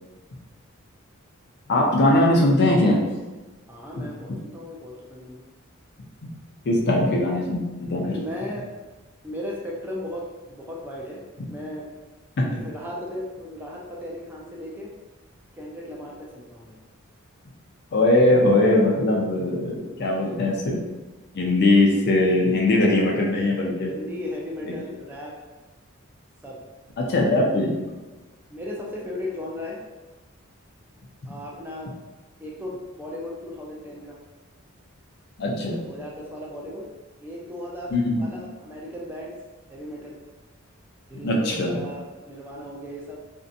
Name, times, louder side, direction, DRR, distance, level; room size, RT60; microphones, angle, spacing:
voice 1, 1.7-3.0 6.2-6.3 6.7-8.1 12.4-12.5 17.9-20.8 21.3-23.9 27.0-27.8 35.4-35.8 37.9-38.2 41.2-41.8, left 1 dB, 50° left, -1 dB, 0.5 m, -20 dB
voice 2, 3.7-5.4 8.1-8.7 9.2-11.2 11.5-11.9 12.5-15.0 15.5-16.8 19.9-20.6 23.9-25.4 26.4-26.6 28.5-29.8 31.3-31.9 32.4-34.2 35.8-36.9 37.2-39.3 39.7-40.2 41.1-43.2, left 1 dB, 10° right, -3 dB, 0.4 m, -36 dB
2.6 x 2.1 x 2.5 m, 1.2 s
head